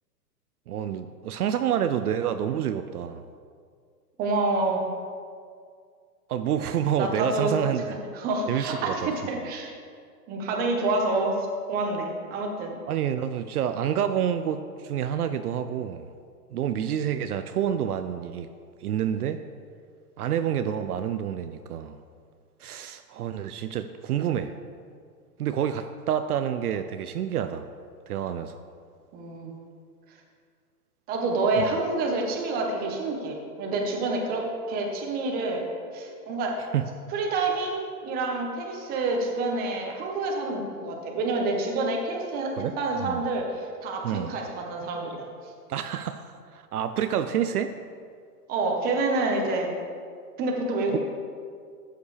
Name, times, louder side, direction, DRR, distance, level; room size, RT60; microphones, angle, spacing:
voice 1, 0.7-3.2 6.3-7.8 8.5-9.1 12.9-16.1 16.5-18.5 18.8-19.4 20.2-22.0 22.6-24.5 25.4-27.7 28.1-28.5 31.6-31.7 36.7-36.9 42.5-42.7 43.0-43.2 44.0-44.3 45.7-47.7, right 9 dB, 65° right, 9 dB, 0.6 m, -28 dB
voice 2, 4.2-4.8 7.0-7.5 8.1-9.7 10.3-11.4 11.7-12.7 29.1-29.5 31.1-35.6 35.9-36.6 37.1-45.2 48.5-49.7 50.4-51.0, right 3 dB, 20° right, 1 dB, 1.1 m, -28 dB
13.0 x 7.9 x 3.4 m, 2.1 s
hypercardioid pair, 150°, 48 cm